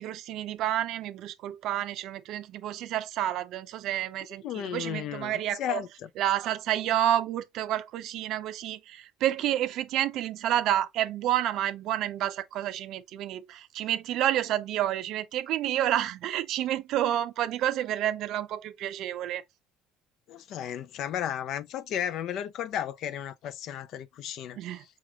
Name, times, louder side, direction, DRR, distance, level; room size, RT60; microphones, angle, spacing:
voice 1, 0.0-5.8 6.2-19.4 24.6-24.8, right 12 dB, 65° right, 0.5 m, -29 dB
voice 2, 4.4-6.1 20.3-24.6, left 10 dB, 60° left, 0.5 m, -34 dB
4.9 x 2.9 x 2.3 m
hypercardioid pair, 75°, 0 cm